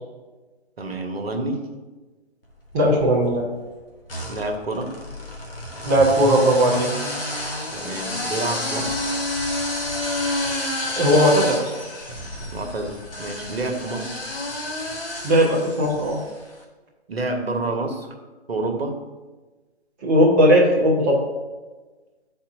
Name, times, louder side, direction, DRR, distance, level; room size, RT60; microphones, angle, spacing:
voice 1, 0.8-1.6 4.3-4.9 7.7-9.0 12.5-14.2 17.1-18.1 18.5-19.0, right 2 dB, 65° right, 5 dB, 1.1 m, -28 dB
sound 1, 2.7-3.4 4.1-16.4, left 1 dB, 60° left, 1.4 m, -29 dB
voice 2, 2.7-3.5 5.8-6.9 10.9-11.7 15.2-16.2 20.0-21.2, equal, 15° right, -4 dB, 0.6 m, -17 dB
11.5 x 4.2 x 2.7 m, 1.2 s
figure-of-eight pair, 140°, 32 cm